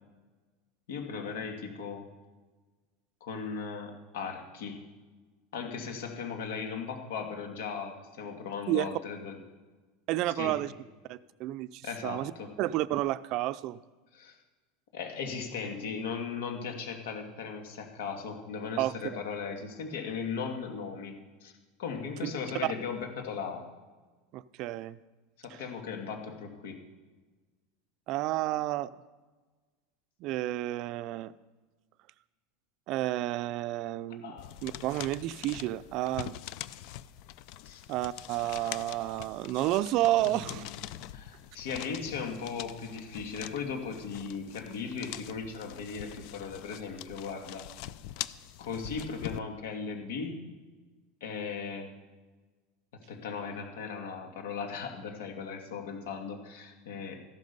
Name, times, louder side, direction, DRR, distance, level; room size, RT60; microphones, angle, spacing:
voice 1, 0.9-2.0 3.2-4.9 5.5-9.4 10.3-10.6 11.8-12.5 14.1-14.4 14.9-21.2 21.4-21.5 21.8-23.7 25.4-26.8 34.2-34.5 37.6-37.8 40.2-40.7 41.1-47.7 48.6-50.4 51.2-51.9 53.1-57.2, left 5 dB, 80° left, 4 dB, 2.3 m, -37 dB
voice 2, 10.1-10.7 11.1-12.3 12.6-13.8 18.8-19.2 22.2-22.3 24.3-25.0 25.5-25.6 28.1-28.9 30.2-31.3 32.9-34.3 34.6-36.4 37.9-40.6, right 15 dB, 45° right, 16 dB, 0.4 m, -31 dB
sound 1, 34.4-49.4, left 13 dB, 55° left, 0.5 m, -44 dB
14.0 x 11.5 x 5.4 m, 1.3 s
supercardioid pair, 150°, 0 cm